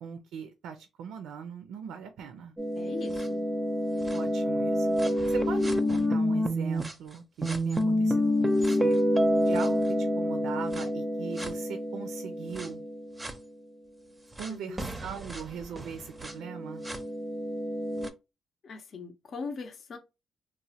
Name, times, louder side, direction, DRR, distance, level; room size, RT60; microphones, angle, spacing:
voice 1, 0.0-2.5 4.1-9.0 9.4-12.8 14.4-16.8, right 7 dB, 85° right, 0.4 m, -40 dB
sound 1, 2.6-6.9 7.4-13.3 14.4-14.5 14.8-18.1, equal, 15° right, 0.5 m, -28 dB
voice 2, 2.8-3.4 14.5-14.9 18.6-20.0, left 4 dB, 55° left, 0.6 m, -40 dB
3.0 x 2.1 x 2.7 m
cardioid pair, 90°, 0 cm